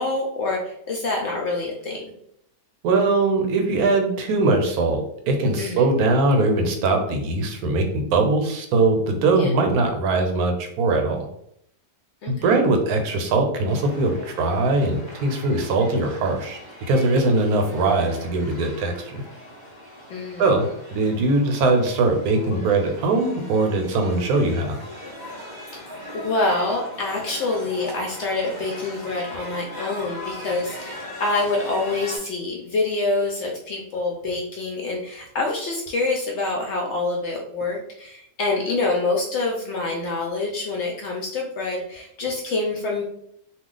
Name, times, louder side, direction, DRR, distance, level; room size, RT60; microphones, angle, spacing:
voice 1, 0.0-2.0 5.6-5.9 9.4-9.5 12.2-12.6 20.1-20.5 26.1-43.0, left 3 dB, 65° left, 0 dB, 0.7 m, -26 dB
voice 2, 2.8-11.3 12.3-16.6 16.9-19.2 20.4-24.8, right 2 dB, 80° right, 4 dB, 1.1 m, -21 dB
sound 1, 13.7-32.2, left 1 dB, 30° right, 0.4 m, -39 dB
2.4 x 2.3 x 3.7 m, 0.72 s
omnidirectional pair, 1.6 m